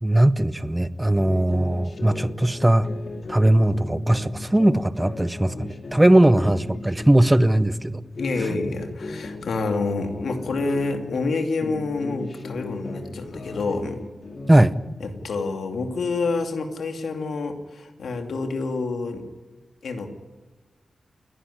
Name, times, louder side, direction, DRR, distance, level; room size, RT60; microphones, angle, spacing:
voice 1, 0.0-2.9 3.3-8.0 8.5-8.6 14.5-14.7, right 1 dB, 10° right, 15 dB, 0.7 m, -19 dB
sound 1, 1.2-7.6 8.0-11.3 11.6-14.7, left 2 dB, 45° left, 2.3 m, -36 dB
voice 2, 8.2-14.0 15.0-19.3 19.8-20.1, left 3 dB, 75° left, 5 dB, 2.6 m, -28 dB
29.0 x 11.0 x 10.0 m, 1.3 s
wide cardioid pair, 150°, 0 cm